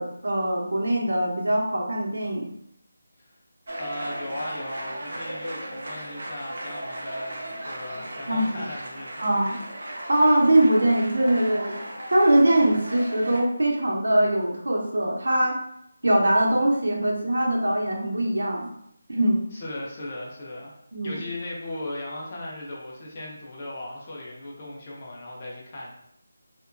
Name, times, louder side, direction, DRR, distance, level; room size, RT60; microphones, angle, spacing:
voice 1, 0.0-2.5 8.3-8.6 9.2-9.6 9.9-11.8 12.1-15.6 16.0-18.7 19.1-19.4 20.9-21.2, right 1 dB, 80° right, -1 dB, 0.7 m, -22 dB
sound 1, 3.7-13.4, right 1 dB, 40° right, 0.5 m, -36 dB
voice 2, 3.8-9.3 19.5-20.7 21.0-25.9, left 1 dB, 20° left, -4 dB, 0.4 m, -37 dB
2.7 x 2.2 x 2.5 m, 0.73 s
figure-of-eight pair, 180°, 0 cm